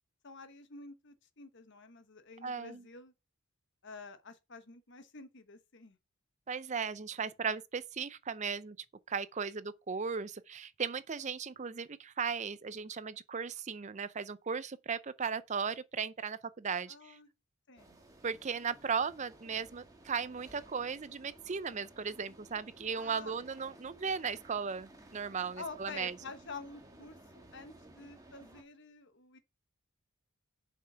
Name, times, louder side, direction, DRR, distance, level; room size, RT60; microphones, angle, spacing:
voice 1, 0.2-3.1 3.8-6.0 16.9-17.3 17.7-18.0 22.9-23.3 25.5-29.4, left 3 dB, 55° left, 1.2 m, -49 dB
voice 2, 2.4-2.8 6.5-8.8 9.1-17.2 18.2-26.1, right 6 dB, 30° right, 0.5 m, -37 dB
sound 1, 17.8-28.6, right 1 dB, 15° right, 1.6 m, -57 dB
7.4 x 5.6 x 5.6 m
head